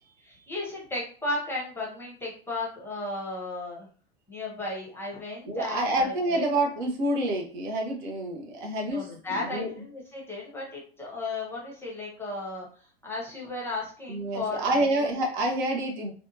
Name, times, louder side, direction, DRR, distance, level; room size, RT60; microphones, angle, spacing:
voice 1, 0.2-3.9 4.3-6.4 8.9-15.2, left 2 dB, 5° left, -4 dB, 0.8 m, -35 dB
voice 2, 5.5-9.7 14.1-16.1, right 1 dB, 50° right, 0 dB, 0.8 m, -28 dB
2.6 x 2.2 x 2.7 m, 0.42 s
figure-of-eight pair, 90°, 32 cm